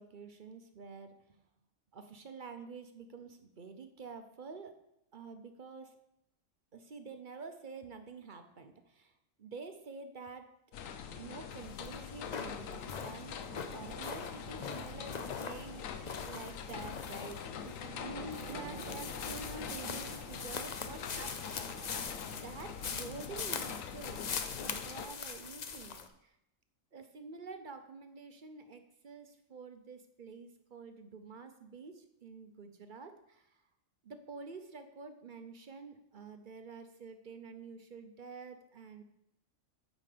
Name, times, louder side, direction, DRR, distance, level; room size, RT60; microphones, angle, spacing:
voice 1, 0.0-1.4 1.9-4.7 5.1-6.0 6.7-9.1 9.4-10.5 11.2-13.3 13.7-24.2 24.5-26.4 26.9-33.6 34.0-39.0, right 4 dB, 45° right, 8 dB, 0.8 m, -48 dB
sound 1, 10.7-25.1, left 7 dB, 85° left, 1.1 m, -44 dB
sound 2, 11.1-24.9, right 5 dB, 70° right, 1.2 m, -53 dB
sound 3, 11.5-26.1, left 6 dB, 45° left, 0.6 m, -43 dB
8.9 x 5.1 x 6.7 m, 0.81 s
omnidirectional pair, 1.3 m